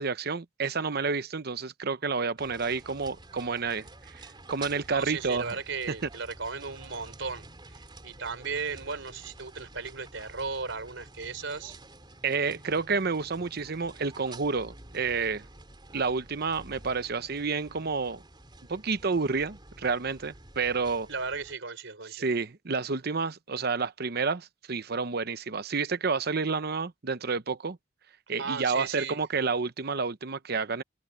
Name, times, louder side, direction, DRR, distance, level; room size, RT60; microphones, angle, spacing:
voice 1, 0.0-3.9 4.1-5.6 12.2-15.5 15.9-18.2 18.7-21.1 22.1-27.8 28.3-30.8, right 4 dB, 55° right, 0.9 m, -30 dB
sound 1, 2.4-21.6, right 2 dB, 25° right, 3.7 m, -50 dB
voice 2, 4.9-11.8 21.1-22.3 28.4-29.2, right 4 dB, 75° right, 4.1 m, -36 dB
head